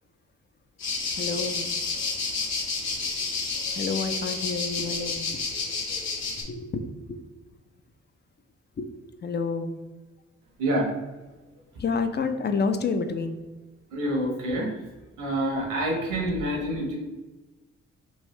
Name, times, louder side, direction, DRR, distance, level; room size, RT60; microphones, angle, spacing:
sound 1, 0.8-6.4, left 4 dB, 55° left, 1.1 m, -30 dB
voice 1, 1.2-1.7 3.8-5.4 6.5-7.2 8.8-8.9 9.2-9.7 11.8-13.4, left 4 dB, 30° left, 8 dB, 0.5 m, -29 dB
voice 2, 13.9-14.7 15.2-17.0, right 1 dB, 70° right, -1 dB, 1.2 m, -27 dB
3.4 x 2.6 x 3.1 m, 1.2 s
hypercardioid pair, 45°, 32 cm